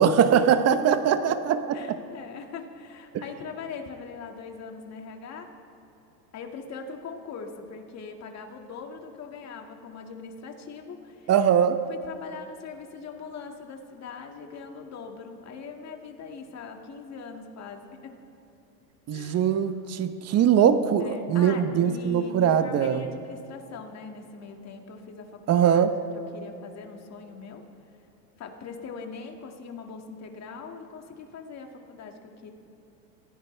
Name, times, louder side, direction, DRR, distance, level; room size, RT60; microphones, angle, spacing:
voice 1, 0.0-2.0 11.3-11.8 19.1-23.0 25.5-26.0, right 8 dB, 30° right, 11 dB, 0.9 m, -22 dB
voice 2, 1.7-5.5 6.3-11.3 11.9-18.1 19.1-19.5 21.0-25.8 26.1-27.6 28.4-32.5, left 5 dB, 35° left, 3 dB, 2.1 m, -41 dB
26.0 x 16.0 x 3.4 m, 3.0 s
hypercardioid pair, 105°, 49 cm